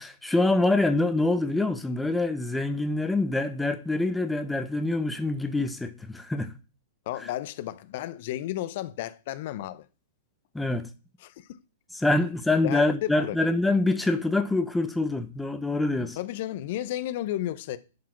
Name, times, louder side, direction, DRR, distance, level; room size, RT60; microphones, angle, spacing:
voice 1, 0.0-6.5 10.5-10.9 11.9-16.2, left 2 dB, 5° left, 1.0 m, -25 dB
voice 2, 7.1-9.8 11.2-11.5 12.6-13.4 16.2-17.8, left 13 dB, 55° left, 0.7 m, -33 dB
9.4 x 4.8 x 6.0 m
hypercardioid pair, 115°, 0 cm